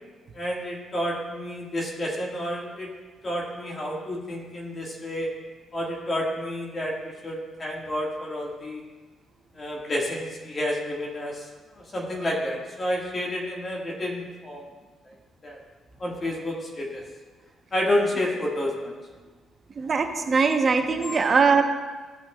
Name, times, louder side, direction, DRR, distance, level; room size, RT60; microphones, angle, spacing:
voice 1, 0.3-2.9 3.2-5.3 5.7-8.8 9.5-11.5 11.9-14.6 15.4-15.6 16.0-17.0 17.7-18.9 21.0-21.2, left 1 dB, 35° left, -2 dB, 1.7 m, -30 dB
voice 2, 19.7-21.6, right 5 dB, 40° right, 5 dB, 0.8 m, -21 dB
14.5 x 5.9 x 2.3 m, 1.4 s
cardioid pair, 90°, 0 cm